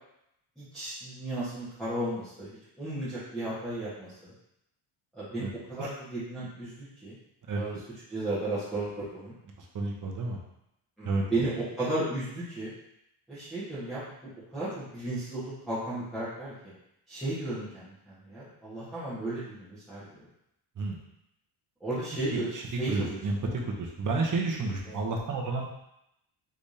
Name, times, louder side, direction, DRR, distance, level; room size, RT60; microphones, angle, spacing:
voice 1, 0.6-2.5 2.8-4.3 5.1-7.2 7.5-7.7 8.1-9.3 11.0-12.7 13.3-14.1 14.5-16.5 17.1-20.3 21.8-22.5 22.8-23.5 24.9-25.0, right 2 dB, ahead, -14 dB, 1.4 m, -34 dB
voice 2, 9.6-10.4 11.0-11.2 20.8-21.0 22.3-22.6 22.9-23.4 23.6-25.7, right 3 dB, 40° right, 0 dB, 0.9 m, -31 dB
4.9 x 3.4 x 2.8 m, 0.81 s
cardioid pair, 135°, 49 cm